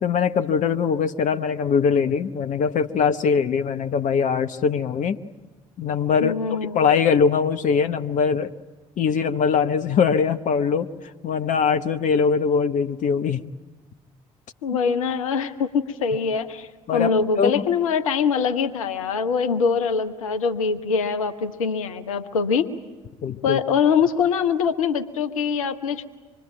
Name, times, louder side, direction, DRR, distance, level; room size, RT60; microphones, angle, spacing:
voice 1, 0.0-5.2 5.8-8.5 9.0-10.9 11.2-13.4 16.9-17.5 23.2-23.6, left 6 dB, 45° left, 9 dB, 0.9 m, -22 dB
voice 2, 6.2-6.8 14.6-22.7 23.4-26.0, left 6 dB, 75° left, 11 dB, 1.0 m, -23 dB
25.5 x 22.0 x 9.1 m, 1.2 s
figure-of-eight pair, 45°, 18 cm